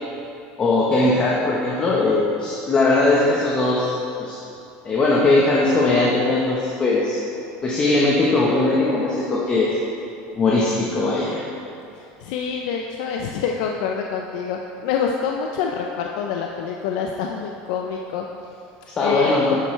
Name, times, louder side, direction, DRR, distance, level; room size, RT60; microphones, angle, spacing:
voice 1, 0.6-4.4 4.8-7.2 7.6-9.8 10.3-11.5 19.0-19.6, left 2 dB, 25° left, -5 dB, 1.2 m, -19 dB
voice 2, 11.9-18.3 19.0-19.3, left 6 dB, 75° left, 1 dB, 0.6 m, -26 dB
10.5 x 7.9 x 3.3 m, 2.7 s
supercardioid pair, 140°, 4 cm